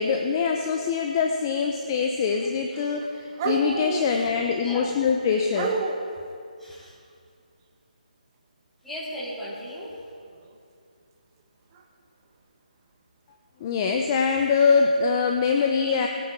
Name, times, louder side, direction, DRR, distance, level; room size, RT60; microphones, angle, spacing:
voice 1, 0.0-5.8 13.6-16.1, left 5 dB, 25° left, 3 dB, 0.7 m, -23 dB
sound 1, 2.0-2.5 2.8-4.5 5.5-6.1 10.3-10.5 11.7-11.8 14.0-14.1 14.9-15.2, right 4 dB, 25° right, 1.1 m, -30 dB
voice 2, 4.0-4.3 4.6-4.9 6.6-7.0 8.8-10.0, equal, 5° left, -11 dB, 3.3 m, -37 dB
20.5 x 8.9 x 4.0 m, 2.3 s
figure-of-eight pair, 150°, 5 cm